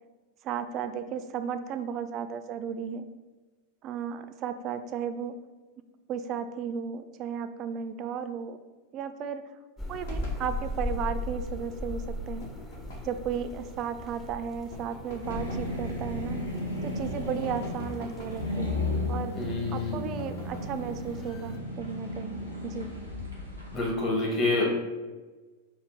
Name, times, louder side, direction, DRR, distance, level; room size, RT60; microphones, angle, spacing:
voice 1, 0.4-3.1 3.8-5.4 6.1-8.6 8.9-9.4 9.9-12.5 13.0-16.4 16.8-19.3 19.7-23.0, right 7 dB, 35° right, 10 dB, 0.3 m, -34 dB
sound 1, 9.8-21.6, left 1 dB, 15° left, 0.6 m, -39 dB
sound 2, 10.0-10.5 12.4-13.2 14.7-15.7 17.4-18.5 20.2-20.8, left 1 dB, 60° left, 1.0 m, -46 dB
sound 3, 15.2-23.8, left 2 dB, 85° left, 1.0 m, -34 dB
voice 2, 19.3-20.1 23.7-24.6, left 2 dB, 35° left, -3 dB, 1.5 m, -28 dB
4.2 x 2.4 x 4.7 m, 1.2 s
figure-of-eight pair, 90°, 0 cm